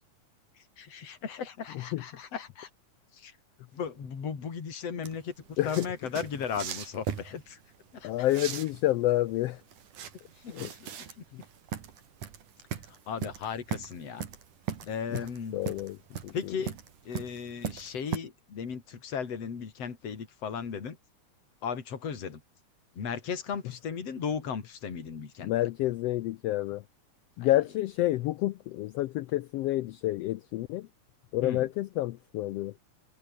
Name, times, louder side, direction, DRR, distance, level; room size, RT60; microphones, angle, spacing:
voice 1, 0.5-2.7 3.1-3.4 3.7-7.6 7.9-8.3 10.4-10.9 11.2-11.3 12.7-14.3 14.9-15.6 16.3-16.7 17.0-21.0 21.6-22.4 23.0-25.5 27.4-27.6 31.4-31.7, left 6 dB, 55° left, 4.3 m, -36 dB
sound 1, 5.0-18.2, right 8 dB, 85° right, 4.0 m, -39 dB
voice 2, 8.0-9.6 10.5-10.7 15.1-15.2 15.5-16.0 16.2-16.3 25.4-26.8 27.4-30.9 31.3-32.7, left 15 dB, 85° left, 1.4 m, -28 dB
omnidirectional pair, 3.5 m